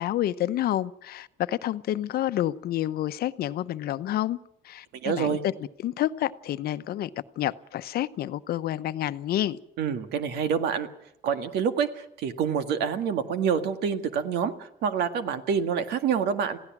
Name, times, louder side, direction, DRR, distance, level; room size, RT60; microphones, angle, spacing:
voice 1, 0.0-4.4 4.6-5.5 5.8-7.1 7.4-9.6, left 13 dB, 65° left, 0.9 m, -29 dB
voice 2, 5.0-5.4 9.8-10.9 11.2-16.6, right 7 dB, 80° right, 1.9 m, -27 dB
27.5 x 16.5 x 6.1 m
cardioid pair, 110°, 17 cm